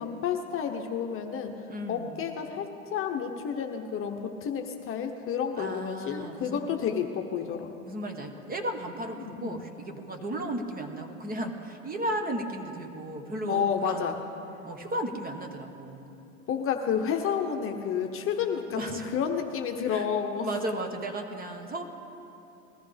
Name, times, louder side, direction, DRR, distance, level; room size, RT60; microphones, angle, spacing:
voice 1, 0.0-1.5 1.9-7.7 9.2-9.6 13.5-14.2 16.5-20.5, left 7 dB, 30° left, 4 dB, 1.1 m, -30 dB
voice 2, 1.7-2.2 5.6-6.7 7.8-14.1 14.6-16.1 18.8-19.1 19.9-20.1 20.4-21.8, right 1 dB, 20° right, 5 dB, 1.4 m, -35 dB
21.0 x 14.0 x 3.5 m, 2.8 s
hypercardioid pair, 100°, 40 cm